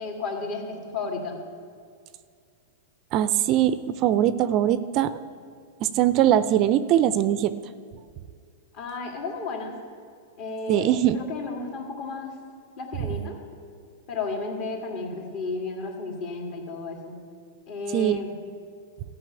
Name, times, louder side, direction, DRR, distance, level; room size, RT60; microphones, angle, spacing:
voice 1, 0.0-1.4 8.7-9.7 10.4-12.3 12.8-13.4 14.1-17.2 17.7-18.3, left 3 dB, 45° left, 1 dB, 2.4 m, -33 dB
voice 2, 3.1-5.2 5.8-7.5 10.7-11.2 17.9-18.2, right 11 dB, 40° right, 14 dB, 0.4 m, -21 dB
13.5 x 5.6 x 8.8 m, 2.2 s
hypercardioid pair, 140°, 0 cm